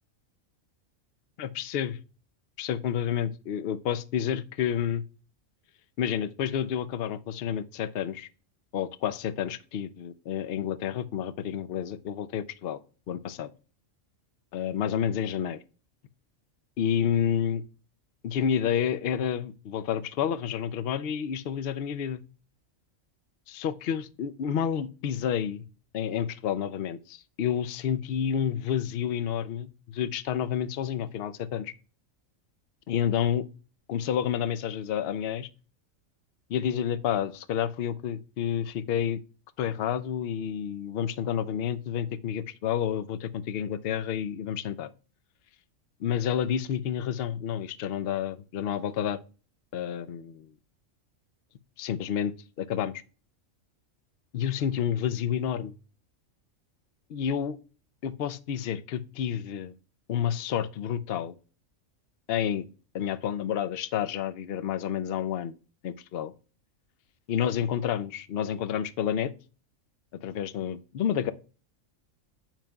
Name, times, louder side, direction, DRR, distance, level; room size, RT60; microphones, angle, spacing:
voice 1, 1.4-2.0 2.6-5.0 6.0-8.3 8.7-12.8 13.1-13.5 14.5-15.6 16.8-17.6 18.2-22.2 23.5-25.6 25.9-31.7 32.9-33.5 33.9-35.5 36.5-39.2 39.6-44.9 46.0-49.2 49.7-50.5 51.8-53.0 54.3-55.8 57.1-57.6 58.0-59.7 60.1-61.3 62.3-62.7 62.9-65.6 65.8-66.3 67.3-69.3 70.2-71.3, left 9 dB, 60° left, 0.7 m, -29 dB
9.0 x 7.5 x 2.3 m
omnidirectional pair, 1.4 m